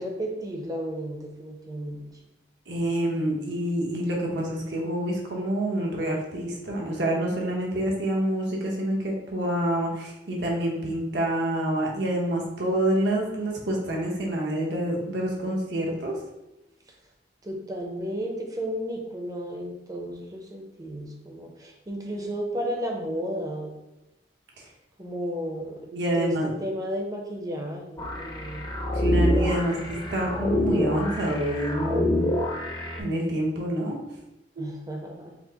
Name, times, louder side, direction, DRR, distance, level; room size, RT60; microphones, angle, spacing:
voice 1, 0.0-2.0 17.4-23.8 25.0-25.9 26.1-28.7 34.6-35.3, equal, 20° right, 1 dB, 0.7 m, -33 dB
voice 2, 2.7-16.1 25.9-26.5 28.9-32.3 33.0-34.0, right 1 dB, 80° right, -1 dB, 1.0 m, -27 dB
sound 1, 28.0-33.0, left 1 dB, 25° left, 0.7 m, -26 dB
4.9 x 2.1 x 3.9 m, 0.93 s
head